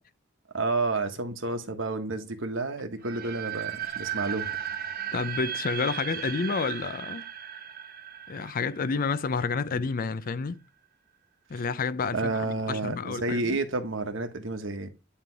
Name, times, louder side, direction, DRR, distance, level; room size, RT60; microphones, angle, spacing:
voice 1, 0.5-4.5 9.7-9.8 12.1-14.9, right 3 dB, 70° right, 1.2 m, -30 dB
sound 1, 3.0-9.9, right 10 dB, 50° right, 1.0 m, -36 dB
voice 2, 5.1-7.3 8.3-10.6 11.5-13.6, left 4 dB, 45° left, 0.4 m, -30 dB
9.9 x 3.3 x 4.6 m
head